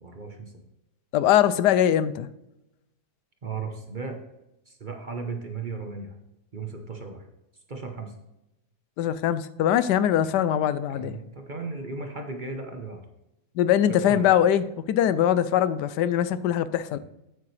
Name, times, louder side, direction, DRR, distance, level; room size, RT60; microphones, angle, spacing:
voice 1, 0.0-0.6 3.4-4.2 4.7-6.1 6.5-7.2 7.7-8.1 10.2-10.3 10.9-13.0 13.9-14.3 16.9-17.0, right 4 dB, 35° right, 0.9 m, -36 dB
voice 2, 1.1-2.3 9.0-11.2 13.6-17.0, left 10 dB, 85° left, 1.2 m, -22 dB
8.6 x 8.5 x 3.2 m
omnidirectional pair, 1.7 m